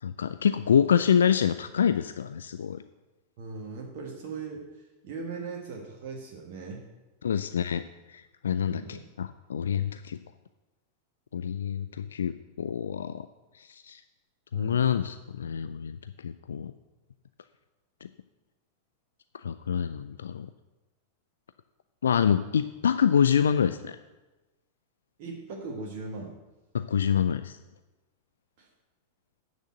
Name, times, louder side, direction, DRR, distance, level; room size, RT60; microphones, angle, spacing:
voice 1, 0.0-2.8 7.2-7.8 8.1-10.2 11.3-13.3 13.6-14.0 14.5-16.0 16.2-16.7 19.4-20.5 22.0-24.0 26.7-27.6, left 8 dB, 65° left, 11 dB, 0.3 m, -26 dB
voice 2, 3.4-6.8 8.6-9.1 14.5-14.8 25.2-26.4 28.6-28.7, right 4 dB, 50° right, -1 dB, 1.6 m, -39 dB
8.9 x 6.3 x 7.6 m, 1.1 s
figure-of-eight pair, 90°, 0 cm